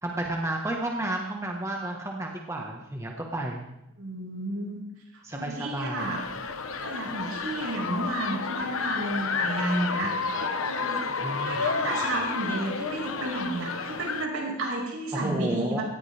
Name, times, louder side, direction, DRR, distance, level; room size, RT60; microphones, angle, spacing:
voice 1, 0.0-3.6 5.2-6.1 11.2-11.7 15.1-15.8, right 1 dB, 15° right, 0 dB, 1.5 m, -32 dB
voice 2, 4.0-4.8 5.1-6.2 6.8-10.4 10.6-11.1 11.3-15.8, right 1 dB, 85° right, -2 dB, 5.6 m, -32 dB
sound 1, 6.0-14.3, left 4 dB, 80° left, 1.0 m, -31 dB
18.0 x 14.5 x 3.5 m, 0.85 s
head